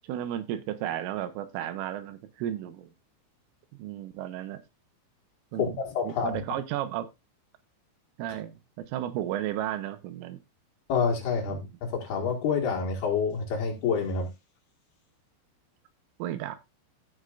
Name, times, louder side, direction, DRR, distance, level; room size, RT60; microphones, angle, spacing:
voice 1, 0.0-2.9 3.7-4.6 5.5-5.7 6.0-7.1 8.2-10.4 11.5-11.7 16.2-16.6, right 12 dB, 90° right, 3.6 m, -33 dB
voice 2, 5.6-6.4 10.9-14.3, left 6 dB, 60° left, 3.4 m, -28 dB
16.0 x 6.4 x 2.5 m
omnidirectional pair, 5.6 m